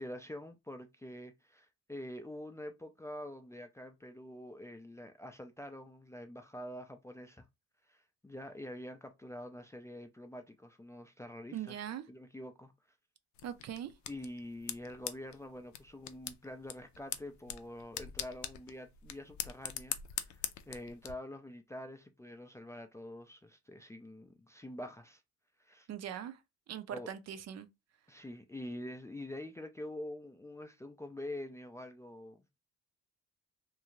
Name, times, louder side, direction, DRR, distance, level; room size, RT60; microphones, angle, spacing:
voice 1, 0.0-7.5 7.9-11.8 12.1-12.7 14.1-20.0 20.3-25.2 25.6-25.9 26.9-27.1 28.1-32.6, left 1 dB, 10° left, 0.3 m, -46 dB
voice 2, 11.5-12.0 13.4-13.9 25.9-26.4 26.7-27.7, right 10 dB, 60° right, 0.5 m, -41 dB
sound 1, 13.4-21.1, left 11 dB, 70° left, 0.5 m, -43 dB
2.6 x 2.3 x 2.9 m
cardioid pair, 90°, 30 cm